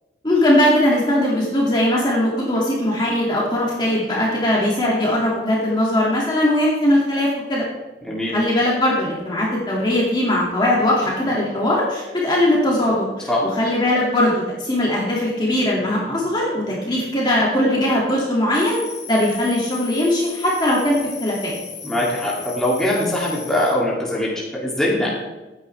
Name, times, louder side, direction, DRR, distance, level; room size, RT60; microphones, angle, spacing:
voice 1, 0.2-7.7 8.3-13.2 13.5-18.8 19.1-21.5, left 1 dB, 25° left, -4 dB, 2.5 m, -20 dB
voice 2, 8.0-8.3 13.3-13.4 21.8-25.1, left 1 dB, 5° left, -6 dB, 2.8 m, -22 dB
sound 1, 18.5-23.8, left 6 dB, 65° left, 3.4 m, -36 dB
14.5 x 9.5 x 3.5 m, 1.1 s
head